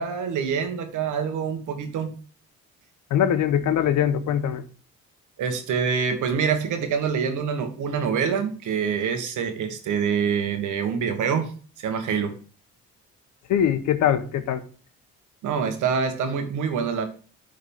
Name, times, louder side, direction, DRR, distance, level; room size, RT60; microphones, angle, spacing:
voice 1, 0.0-2.1 5.4-11.5 11.8-12.4 15.4-17.0, right 6 dB, 80° right, 7 dB, 1.4 m, -26 dB
voice 2, 3.1-4.6 13.5-14.6, left 9 dB, 75° left, 10 dB, 0.9 m, -22 dB
11.5 x 3.9 x 3.5 m, 0.40 s
cardioid pair, 90°, 30 cm